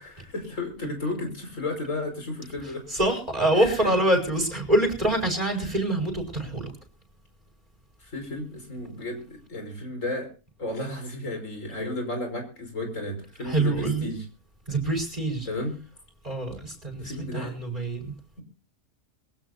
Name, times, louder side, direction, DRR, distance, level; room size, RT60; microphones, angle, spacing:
voice 1, 0.0-2.9 3.5-4.0 5.6-5.8 8.0-10.3 10.6-14.3 15.5-15.7 17.0-17.6, left 2 dB, 65° left, 4 dB, 5.4 m, -33 dB
voice 2, 2.9-6.7 13.4-14.1 14.7-15.5 16.2-18.1, right 1 dB, 30° right, 4 dB, 5.0 m, -25 dB
22.5 x 16.5 x 2.7 m, 0.35 s
omnidirectional pair, 1.4 m